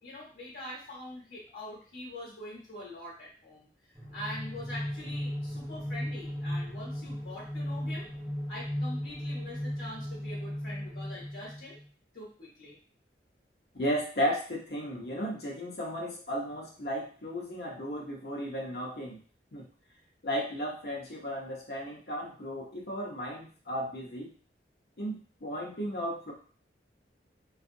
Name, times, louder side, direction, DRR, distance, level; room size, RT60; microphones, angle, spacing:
voice 1, 0.0-3.7 4.1-8.1 8.5-11.8 12.1-12.8, left 1 dB, 80° left, -6 dB, 1.0 m, -44 dB
sound 1, 3.9-11.9, equal, 5° right, 0.5 m, -36 dB
voice 2, 13.7-19.2 19.5-19.7 20.2-24.3 25.0-26.3, equal, 60° left, -1 dB, 0.8 m, -34 dB
2.6 x 2.4 x 2.6 m, 0.40 s
head